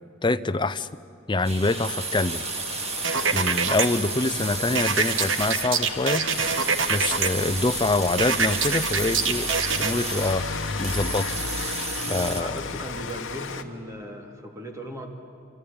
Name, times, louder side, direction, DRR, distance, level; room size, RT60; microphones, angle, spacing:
voice 1, 0.2-0.9 1.3-2.4 3.3-6.4 6.9-9.5 9.8-11.3 12.1-12.6, left 2 dB, 20° left, 12 dB, 0.6 m, -25 dB
sound 1, 1.4-12.4, right 4 dB, 30° right, 1.9 m, -33 dB
Rain, 1.6-13.6, left 4 dB, 70° left, 1.3 m, -35 dB
sound 2, 3.0-3.9 4.7-7.3 8.2-9.9, right 5 dB, 65° right, 1.4 m, -25 dB
voice 2, 12.4-15.1, equal, 15° right, 2 dB, 2.8 m, -37 dB
26.5 x 26.0 x 8.8 m, 2.4 s
head